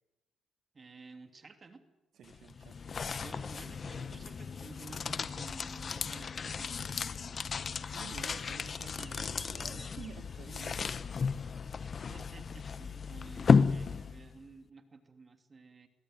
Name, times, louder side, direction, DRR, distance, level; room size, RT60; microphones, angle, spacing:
voice 1, 0.7-1.8 3.2-6.9 12.0-15.9, right 4 dB, 35° right, 7 dB, 2.9 m, -53 dB
voice 2, 2.1-3.0 7.9-10.9, right 8 dB, 65° right, 8 dB, 2.1 m, -51 dB
sound 1, 2.2-14.4, left 5 dB, 40° left, 0.9 m, -33 dB
sound 2, 2.2-12.8, right 1 dB, 10° right, 4.3 m, -62 dB
Wind instrument woodwind instrument, 3.6-9.0, left 7 dB, 60° left, 1.7 m, -56 dB
22.0 x 16.5 x 9.4 m, 1.1 s
cardioid pair, 90°, 0 cm